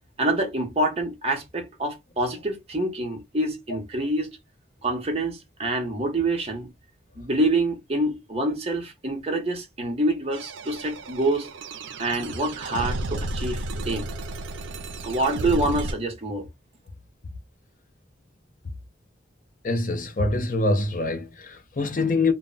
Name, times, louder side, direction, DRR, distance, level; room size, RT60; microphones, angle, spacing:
voice 1, 0.2-4.3 4.8-6.7 7.2-11.5 12.0-14.1 15.0-16.5, right 1 dB, 35° right, 0.7 m, -26 dB
sound 1, 10.3-15.9, right 2 dB, 90° right, 0.4 m, -33 dB
voice 2, 19.6-22.3, left 2 dB, 45° left, 0.5 m, -24 dB
2.1 x 2.1 x 3.8 m
head